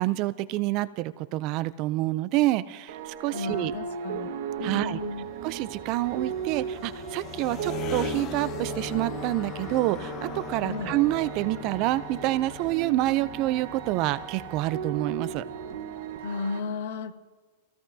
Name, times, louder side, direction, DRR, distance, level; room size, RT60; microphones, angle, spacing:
voice 1, 0.0-3.7 4.6-5.0 5.4-15.4, right 17 dB, 30° right, 15 dB, 0.4 m, -27 dB
sound 1, 2.9-16.6, right 8 dB, 60° right, 1.3 m, -37 dB
voice 2, 3.3-4.3 4.6-5.2 10.6-11.0 16.2-17.1, left 4 dB, 65° left, 7 dB, 1.4 m, -34 dB
sound 2, 4.6-16.2, left 8 dB, 25° left, 0.8 m, -40 dB
Wind instrument woodwind instrument, 8.9-15.0, right 10 dB, 15° right, 1.1 m, -48 dB
26.5 x 16.5 x 2.7 m, 1.4 s
supercardioid pair, 170°, 0 cm